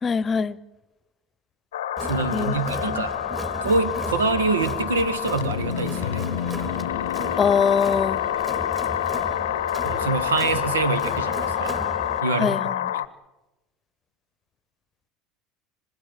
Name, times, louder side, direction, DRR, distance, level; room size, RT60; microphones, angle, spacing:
voice 1, 0.0-0.6 2.3-2.6 2.8-3.1 7.4-8.2 12.4-12.9, left 6 dB, 30° left, 20 dB, 0.9 m, -23 dB
sound 1, 1.7-13.1, left 12 dB, 75° left, 0.7 m, -28 dB
Crowd, 2.0-12.2, right 1 dB, 15° right, 2.9 m, -35 dB
voice 2, 2.0-3.1 3.6-6.3 9.8-11.8 12.2-13.0, right 3 dB, 80° right, 15 dB, 1.4 m, -25 dB
26.0 x 17.5 x 9.2 m, 1.1 s
hypercardioid pair, 70°, 0 cm